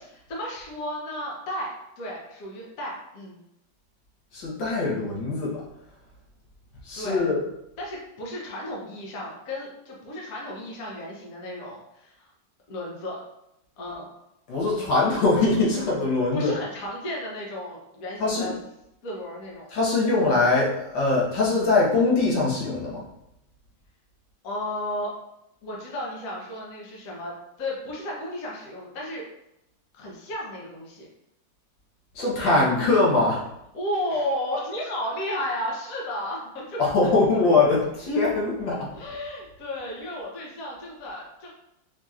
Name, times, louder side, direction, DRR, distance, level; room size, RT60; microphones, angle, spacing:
voice 1, 0.3-3.4 6.9-7.3 7.8-12.3 12.7-13.2 13.8-14.1 16.3-18.5 19.0-19.7 24.4-25.1 25.6-27.3 27.6-29.3 29.9-31.1 33.7-37.4 38.9-41.5, left 1 dB, 55° left, -3 dB, 1.2 m, -33 dB
voice 2, 4.3-5.6 6.8-7.4 14.5-16.5 18.2-18.5 19.7-23.0 32.2-33.4 36.8-38.9, left 3 dB, 80° left, -5 dB, 1.8 m, -22 dB
5.5 x 2.9 x 2.4 m, 0.83 s
omnidirectional pair, 2.0 m